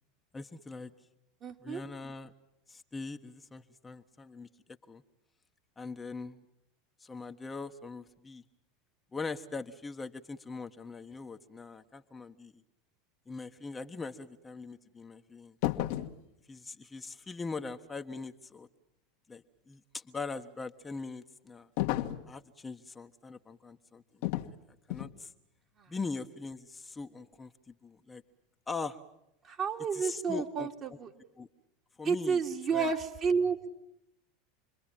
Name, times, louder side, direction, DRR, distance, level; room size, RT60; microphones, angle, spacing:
voice 1, 0.3-0.9 1.6-2.3 2.7-4.5 4.9-5.0 5.8-6.4 7.0-8.4 9.1-12.5 13.3-15.5 16.5-18.7 19.3-21.7 22.3-24.2 24.9-25.3 25.9-28.2 28.7-29.0 29.9-30.7 31.4-31.5 32.0-32.4 32.7-32.9, left 4 dB, 15° left, 5 dB, 1.2 m, -41 dB
voice 2, 1.4-1.8 25.8-25.9 29.4-31.1 32.0-33.7, right 5 dB, 40° right, 3 dB, 2.8 m, -31 dB
sound 1, 15.6-16.2 21.8-22.3 24.2-24.5 24.9-25.2, left 15 dB, 65° left, 1.5 m, -32 dB
28.0 x 22.0 x 9.0 m, 0.81 s
hypercardioid pair, 90°, 0 cm